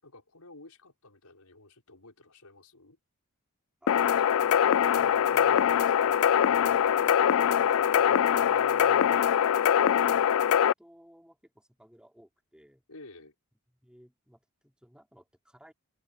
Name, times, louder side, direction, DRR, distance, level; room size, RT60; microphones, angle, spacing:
voice 1, 0.0-3.0 5.0-6.6 8.3-9.2 12.9-13.3, left 2 dB, 85° left, 5.2 m, -53 dB
voice 2, 3.8-8.3 8.9-12.8 13.7-15.7, equal, 5° right, 4.0 m, -57 dB
sound 1, 3.9-10.7, left 9 dB, 65° left, 0.4 m, -23 dB
head